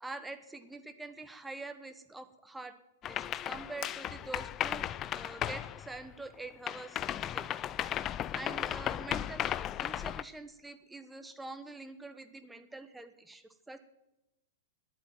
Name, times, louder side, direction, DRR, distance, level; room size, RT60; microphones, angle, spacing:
voice 1, 0.0-2.8 3.0-4.9 5.1-7.5 7.9-13.8, right 2 dB, 5° right, 9 dB, 1.2 m, -45 dB
sound 1, 3.0-6.4 6.7-10.2, left 11 dB, 30° left, 0.4 m, -35 dB
10.5 x 8.3 x 9.1 m, 0.92 s
hypercardioid pair, 105°, 0 cm